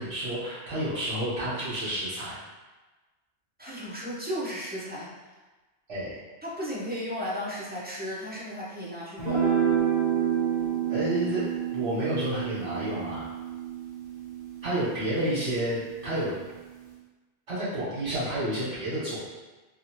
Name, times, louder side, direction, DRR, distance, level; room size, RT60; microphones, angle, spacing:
voice 1, 0.0-2.4 5.9-6.2 10.9-11.4 11.7-13.3 14.6-16.3 17.5-19.2, right 1 dB, 70° right, -12 dB, 1.3 m, -30 dB
voice 2, 3.6-5.3 6.4-9.5, equal, 10° right, -8 dB, 0.5 m, -35 dB
sound 1, 9.2-15.7, right 8 dB, 40° right, 0.8 m, -29 dB
2.7 x 2.5 x 2.9 m, 1.2 s
omnidirectional pair, 1.2 m